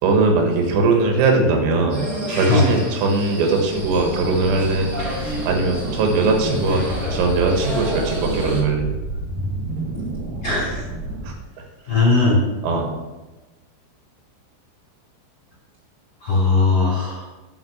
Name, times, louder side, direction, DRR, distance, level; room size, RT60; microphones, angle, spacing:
voice 1, 0.0-4.9 5.4-6.8 7.1-8.9 11.2-11.4 12.6-12.9, right 3 dB, 80° right, 2 dB, 4.1 m, -20 dB
sound 1, 1.9-8.6, equal, 30° right, 2.3 m, -30 dB
sound 2, 3.7-11.3, right 2 dB, 60° right, 2.1 m, -29 dB
voice 2, 10.4-10.8 11.9-12.4 16.2-17.2, left 3 dB, 40° left, -6 dB, 1.8 m, -18 dB
9.4 x 5.6 x 6.9 m, 1.1 s
omnidirectional pair, 6.0 m